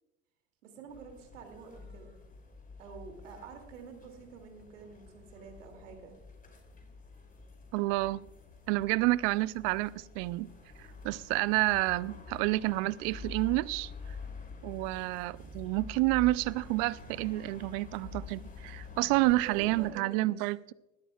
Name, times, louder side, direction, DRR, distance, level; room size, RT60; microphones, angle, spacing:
voice 1, 0.6-2.1 2.8-6.1 19.4-20.4, right 5 dB, 85° right, 2.8 m, -48 dB
sound 1, 0.9-19.9, left 4 dB, 25° left, 4.9 m, -48 dB
voice 2, 7.7-8.3 8.7-10.5 10.8-13.9 14.6-20.7, right 20 dB, 65° right, 0.6 m, -29 dB
20.0 x 13.0 x 2.4 m
hypercardioid pair, 75°, 36 cm